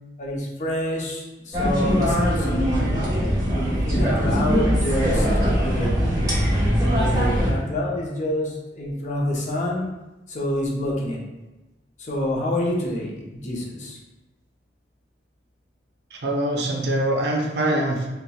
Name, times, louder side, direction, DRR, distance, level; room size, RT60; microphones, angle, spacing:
voice 1, 0.2-5.9 6.9-9.9 10.3-11.2 12.0-14.0, left 1 dB, 40° left, -2 dB, 0.5 m, -27 dB
sound 1, 1.5-7.5, equal, 20° right, 0.8 m, -21 dB
voice 2, 16.1-18.1, right 1 dB, 60° right, 0 dB, 0.5 m, -23 dB
4.1 x 2.1 x 2.3 m, 1.1 s
head